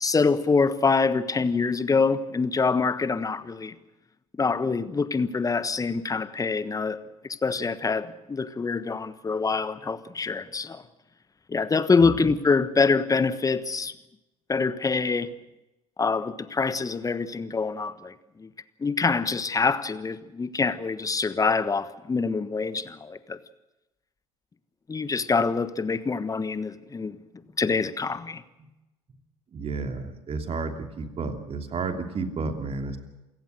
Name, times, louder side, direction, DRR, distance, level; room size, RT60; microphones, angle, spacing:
voice 1, 0.0-3.7 4.4-7.0 7.3-10.8 11.5-13.9 14.5-15.3 16.0-18.1 18.4-18.5 18.8-23.4 24.9-27.2 27.6-28.4, left 4 dB, 20° left, 1.3 m, -25 dB
voice 2, 29.5-33.0, right 4 dB, 35° right, 2.9 m, -31 dB
27.5 x 17.0 x 6.6 m
figure-of-eight pair, 60°, 18 cm